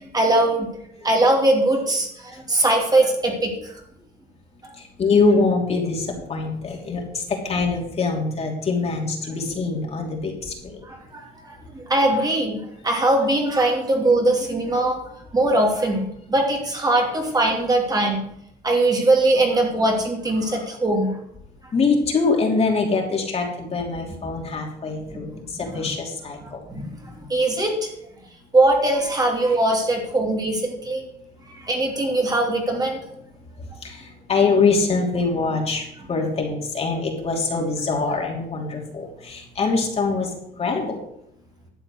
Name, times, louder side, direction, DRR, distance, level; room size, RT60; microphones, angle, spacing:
voice 1, 0.1-0.7 1.0-3.7 4.6-4.7 10.9-11.2 11.7-12.6 12.8-15.0 15.3-18.2 18.6-21.1 25.8-25.9 26.7-27.9 28.5-31.0 31.6-33.0, right 2 dB, 20° right, 1 dB, 2.7 m, -21 dB
voice 2, 4.8-10.8 20.4-20.7 21.7-26.7 29.3-29.4 33.6-41.0, left 4 dB, 40° left, 1 dB, 3.1 m, -24 dB
12.0 x 7.8 x 6.4 m, 0.75 s
cardioid pair, 110°, 17 cm